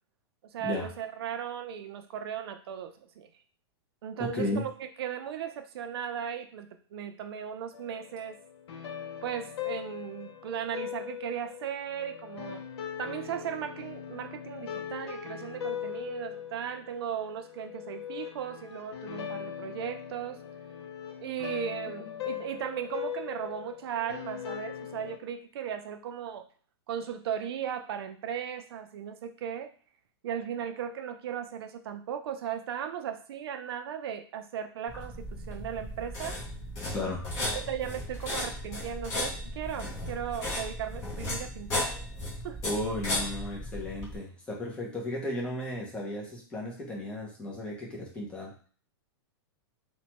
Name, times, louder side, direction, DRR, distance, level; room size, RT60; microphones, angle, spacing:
voice 1, 0.5-3.3 4.0-4.7 5.0-8.4 9.2-12.6 13.0-20.4 21.2-26.5 26.9-29.7 30.2-36.4 37.5-41.9 42.4-42.6, right 8 dB, 65° right, 7 dB, 0.4 m, -37 dB
voice 2, 4.2-4.7 22.0-22.1 36.9-37.3 42.6-48.5, left 1 dB, 5° left, -3 dB, 0.5 m, -34 dB
sound 1, 7.7-25.2, left 9 dB, 75° left, 0.5 m, -40 dB
sound 2, 34.9-44.2, left 1 dB, 25° left, 0.9 m, -35 dB
3.1 x 2.2 x 2.9 m, 0.42 s
supercardioid pair, 170°, 14 cm